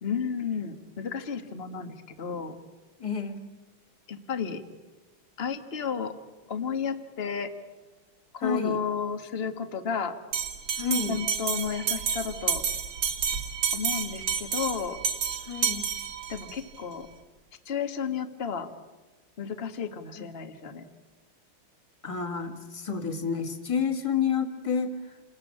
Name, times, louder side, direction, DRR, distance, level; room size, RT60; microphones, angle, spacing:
voice 1, 0.0-2.6 4.1-4.6 5.4-6.1 6.5-7.5 8.3-10.1 11.1-12.6 13.7-15.0 16.3-17.1 17.6-18.7 19.4-20.8, left 6 dB, 30° left, 8 dB, 1.6 m, -32 dB
voice 2, 3.0-3.4 8.4-8.8 10.8-11.2 15.4-15.9 20.2-20.3 22.0-25.2, left 6 dB, 15° left, 5 dB, 1.9 m, -29 dB
Bell, 10.3-16.6, right 7 dB, 85° right, 2.6 m, -30 dB
29.0 x 20.0 x 8.6 m, 1.2 s
omnidirectional pair, 2.2 m